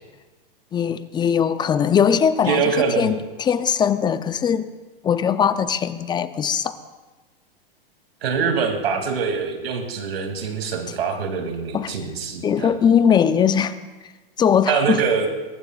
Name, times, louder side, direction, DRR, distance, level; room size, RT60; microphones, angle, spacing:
voice 1, 0.7-2.6 3.0-4.7 5.0-6.8 11.7-11.9 12.4-13.8 14.4-15.0, left 8 dB, 15° left, 13 dB, 0.5 m, -20 dB
voice 2, 2.4-3.1 8.2-12.7 14.7-15.3, right 6 dB, 80° right, 3 dB, 2.7 m, -24 dB
22.5 x 19.0 x 2.4 m, 1.2 s
hypercardioid pair, 120°, 30 cm